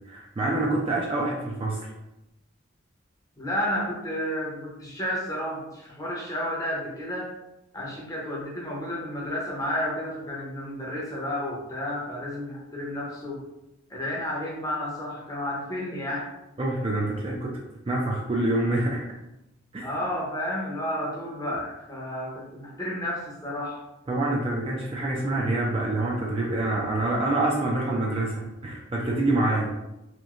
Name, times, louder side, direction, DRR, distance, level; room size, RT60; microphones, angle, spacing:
voice 1, 0.1-1.9 16.6-19.1 19.7-19.9 24.1-29.7, right 2 dB, 30° right, -3 dB, 0.3 m, -26 dB
voice 2, 3.4-7.3 7.7-13.4 13.9-16.2 19.8-23.8 29.5-29.6, left 1 dB, 15° left, -4 dB, 0.6 m, -31 dB
2.9 x 2.5 x 2.4 m, 0.93 s
head